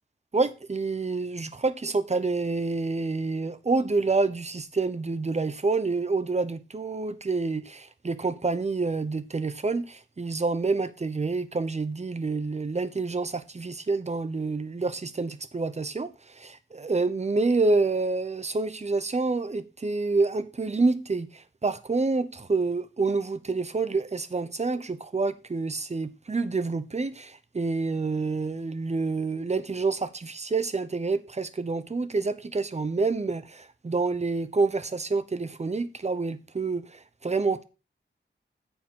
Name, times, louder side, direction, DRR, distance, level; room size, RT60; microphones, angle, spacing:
voice 1, 0.3-37.6, right 3 dB, 35° right, 0.8 m, -28 dB
9.0 x 7.1 x 3.7 m
wide cardioid pair, 95°, 20 cm